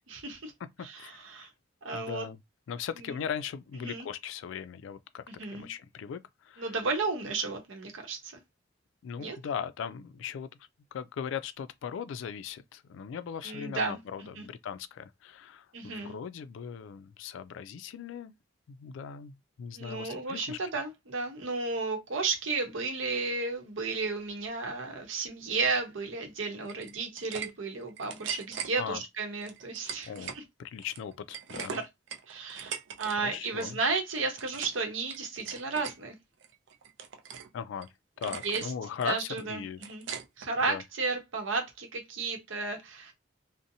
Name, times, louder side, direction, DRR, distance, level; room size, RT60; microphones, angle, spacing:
voice 1, 0.1-0.5 0.8-1.5 1.8-2.3 3.0-3.2 3.8-4.1 5.3-5.7 6.6-8.4 9.2-9.4 13.4-14.0 14.4-14.5 15.7-16.1 19.7-30.4 31.5-31.8 32.3-36.1 38.3-38.7 39.0-40.1 40.4-43.1, right 4 dB, 85° right, 0.8 m, -33 dB
voice 2, 1.0-1.5 1.9-2.4 2.7-6.7 9.0-10.5 10.9-18.3 18.7-20.6 28.8-29.0 30.0-30.3 30.6-31.8 33.2-33.8 37.5-37.9 38.2-39.8 40.7-40.8, left 7 dB, 80° left, 0.3 m, -39 dB
sound 1, 26.7-27.5 27.8-28.7 29.4-30.4 30.8-33.2 33.4-33.7 34.1-34.8 35.1-36.0 36.4-37.5 37.8-37.9 38.2-38.7 39.0-40.5, right 8 dB, 70° right, 0.4 m, -40 dB
2.7 x 2.0 x 2.6 m
head